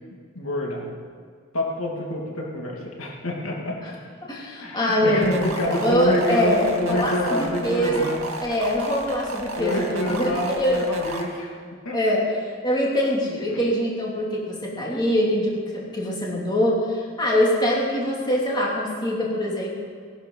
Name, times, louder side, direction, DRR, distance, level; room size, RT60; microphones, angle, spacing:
voice 1, 0.3-0.9 1.5-3.9 4.6-8.3 9.5-11.5 11.8-12.0 13.5-13.6, left 1 dB, 75° left, -1 dB, 2.6 m, -27 dB
voice 2, 4.2-8.0 8.4-10.3 10.5-10.8 11.9-12.2 12.6-19.8, equal, 20° left, -4 dB, 3.1 m, -23 dB
sound 1, 5.2-11.2, right 2 dB, 75° right, 2.4 m, -32 dB
18.5 x 11.5 x 5.7 m, 2.1 s
head